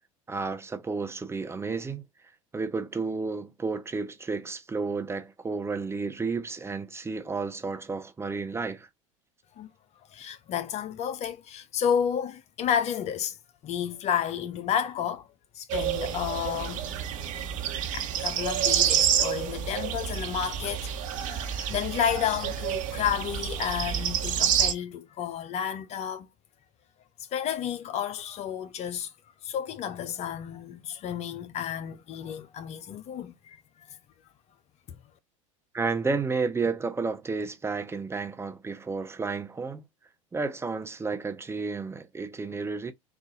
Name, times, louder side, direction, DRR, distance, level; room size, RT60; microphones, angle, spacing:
voice 1, 0.3-2.0 2.5-8.9 35.7-39.8 40.3-42.9, right 4 dB, 15° right, 0.7 m, -31 dB
voice 2, 10.1-13.4 13.6-15.3 15.6-16.8 17.9-26.3 27.3-29.1 29.4-33.6, left 8 dB, 40° left, 0.6 m, -31 dB
sound 1, 15.7-24.7, right 9 dB, 50° right, 1.1 m, -28 dB
3.9 x 2.5 x 3.9 m
hypercardioid pair, 80°, 17 cm